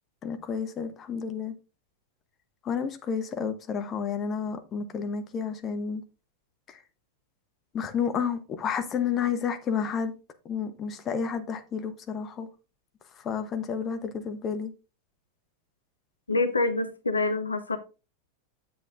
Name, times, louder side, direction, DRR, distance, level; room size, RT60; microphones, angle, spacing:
voice 1, 0.2-1.5 2.6-6.0 6.7-6.8 7.7-10.1 10.4-12.5 13.1-14.7, left 6 dB, 25° left, 1.0 m, -31 dB
voice 2, 16.3-17.8, left 3 dB, 75° left, 0.7 m, -26 dB
8.3 x 7.6 x 2.5 m
figure-of-eight pair, 90°, 0 cm